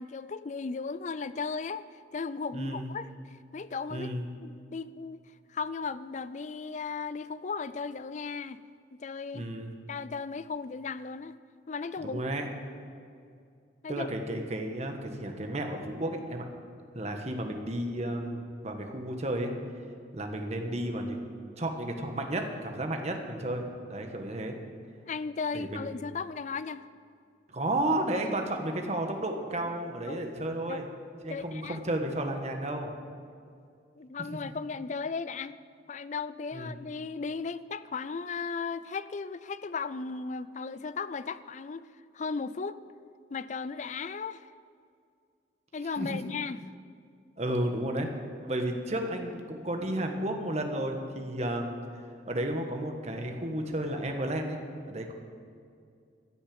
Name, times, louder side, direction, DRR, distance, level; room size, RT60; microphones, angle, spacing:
voice 1, 0.0-1.9 2.1-4.1 4.4-5.2 5.5-8.6 9.0-9.5 9.9-11.4 11.7-12.2 13.8-14.1 25.1-26.9 30.1-30.2 30.7-30.8 31.3-31.8 34.0-35.6 35.9-41.9 42.1-42.8 43.3-44.5 45.7-46.6, left 5 dB, 40° left, 15 dB, 0.4 m, -36 dB
voice 2, 2.5-2.8 3.9-4.2 9.3-9.7 12.0-12.5 13.9-16.5 16.9-19.5 20.1-24.5 25.5-25.8 27.5-30.9 31.2-32.9 36.5-36.8 46.0-46.3 47.4-48.1 48.4-51.7 52.3-54.6 54.9-55.1, right 1 dB, 40° right, 4 dB, 1.4 m, -32 dB
15.0 x 6.4 x 8.8 m, 2.3 s
head